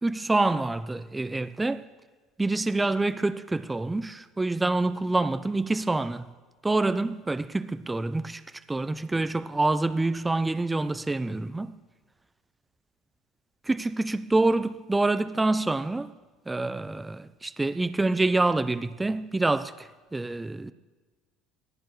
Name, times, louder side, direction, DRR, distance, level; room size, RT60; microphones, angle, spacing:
voice 1, 0.0-1.9 2.4-6.3 6.6-8.4 8.7-11.7 13.7-16.1 16.5-20.7, right 2 dB, 10° right, 0.4 m, -26 dB
18.5 x 15.5 x 3.2 m
cardioid pair, 120°, 0 cm